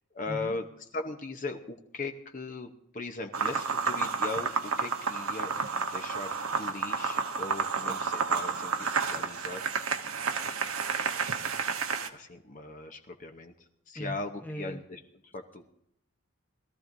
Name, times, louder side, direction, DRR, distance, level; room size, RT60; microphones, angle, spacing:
voice 1, 0.1-0.6 0.9-9.6 12.1-13.5 13.9-15.6, left 3 dB, 40° left, 5 dB, 0.8 m, -39 dB
sound 1, 3.3-12.1, right 5 dB, 80° right, 1.0 m, -31 dB
voice 2, 13.9-14.8, equal, 10° left, 3 dB, 1.0 m, -39 dB
21.0 x 14.0 x 2.6 m, 0.77 s
head